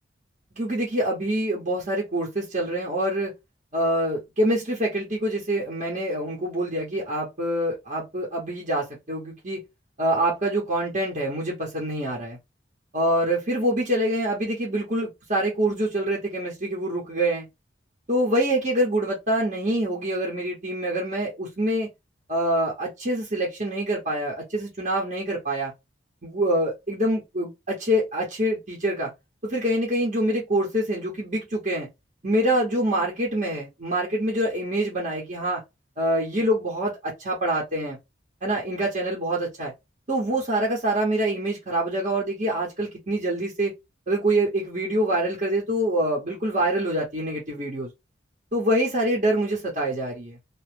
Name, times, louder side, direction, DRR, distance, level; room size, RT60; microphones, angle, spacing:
voice 1, 0.5-3.3 3.7-9.6 10.0-12.4 12.9-17.5 18.1-21.9 22.3-25.7 26.2-29.1 29.4-31.9 32.2-35.6 36.0-38.0 38.4-39.7 40.1-43.7 44.1-47.9 48.5-50.4, right 1 dB, 40° right, 1.0 m, -25 dB
2.9 x 2.3 x 3.3 m
head